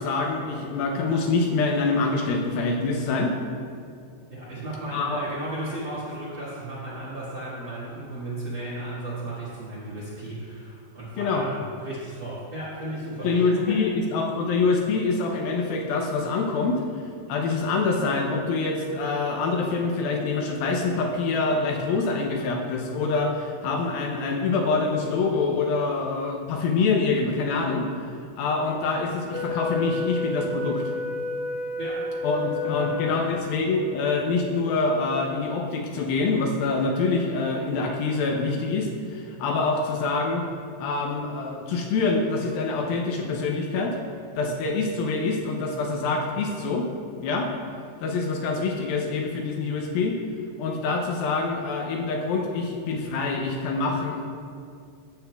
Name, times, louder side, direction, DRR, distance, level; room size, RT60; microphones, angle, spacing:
voice 1, 0.0-3.3 4.9-5.2 11.2-11.5 13.2-16.8 17.3-27.9 28.4-30.8 32.2-40.5 40.8-44.0 44.4-46.9 47.2-47.5 48.0-50.2 50.6-54.3, left 3 dB, 80° left, 1 dB, 2.1 m, -25 dB
voice 2, 4.3-11.5 11.8-14.0 31.8-33.3, right 1 dB, 70° right, -10 dB, 1.1 m, -35 dB
Wind instrument woodwind instrument, 29.3-33.7, left 3 dB, 35° right, 1.6 m, -30 dB
14.0 x 7.9 x 2.3 m, 2.2 s
omnidirectional pair, 5.0 m